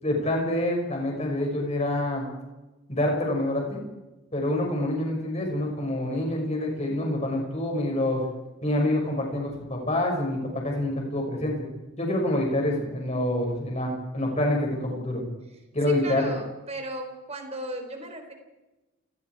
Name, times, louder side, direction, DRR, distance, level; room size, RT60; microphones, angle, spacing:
voice 1, 0.0-2.3 2.9-3.8 4.3-8.2 8.6-11.6 12.0-15.2 15.7-16.3, left 1 dB, 35° left, 0 dB, 6.3 m, -26 dB
voice 2, 15.9-18.3, right 1 dB, 35° right, 5 dB, 4.0 m, -36 dB
29.0 x 19.5 x 4.8 m, 1.0 s
head